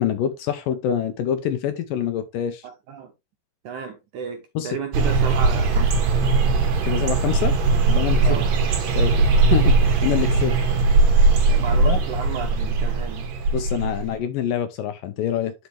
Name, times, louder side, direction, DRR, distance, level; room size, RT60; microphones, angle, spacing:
voice 1, 0.0-2.6 4.6-4.8 6.8-7.6 7.9-8.4 8.7-9.2 9.5-9.8 10.0-10.6 11.8-12.0 13.5-15.5, left 9 dB, 75° left, 2.1 m, -25 dB
voice 2, 2.6-3.1 3.6-6.0 8.2-8.5 11.5-13.3 13.8-13.9, right 7 dB, 75° right, 1.8 m, -33 dB
sound 1, 4.9-14.1, right 3 dB, 50° right, 2.6 m, -19 dB
10.5 x 5.4 x 3.2 m
omnidirectional pair, 4.6 m